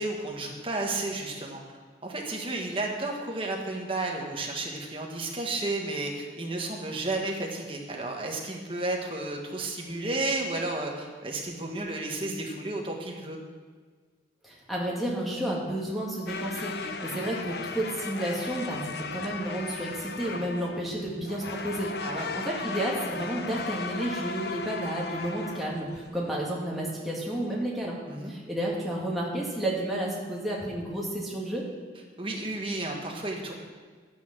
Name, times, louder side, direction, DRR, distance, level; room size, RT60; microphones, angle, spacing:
voice 1, 0.0-13.4 17.1-17.2 22.0-22.3 28.1-28.3 32.2-33.6, right 2 dB, 30° right, 0 dB, 1.5 m, -32 dB
voice 2, 14.4-18.8 19.1-28.0 28.2-31.6, right 1 dB, ahead, -5 dB, 2.3 m, -31 dB
sound 1, 16.3-26.3, left 4 dB, 60° left, 0.7 m, -37 dB
12.5 x 9.4 x 6.1 m, 1.5 s
head